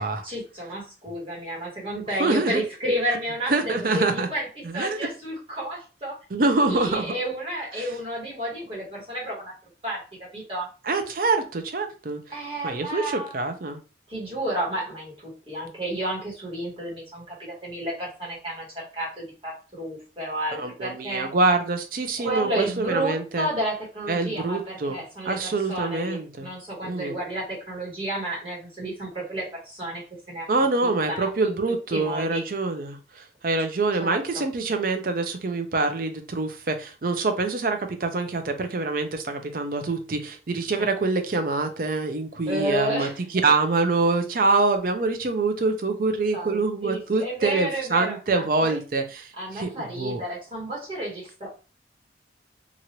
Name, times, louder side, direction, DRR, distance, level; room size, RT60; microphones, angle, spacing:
voice 1, 0.0-6.2 6.6-9.5 9.8-10.0 10.3-10.7 12.3-13.4 14.1-21.3 22.2-30.0 30.3-30.5 30.8-31.6 31.9-32.4 34.0-34.4 40.8-40.9 42.5-43.2 46.3-48.8 49.4-51.5, right 1 dB, 30° right, -5 dB, 1.3 m, -31 dB
voice 2, 2.2-2.6 3.5-4.3 4.6-5.0 6.3-7.1 7.8-7.9 10.8-12.2 12.6-13.8 20.6-23.5 24.1-25.0 25.2-26.5 26.8-27.2 30.5-43.1 43.4-50.2, right 3 dB, 50° right, 6 dB, 0.5 m, -25 dB
2.9 x 2.5 x 2.8 m, 0.34 s
head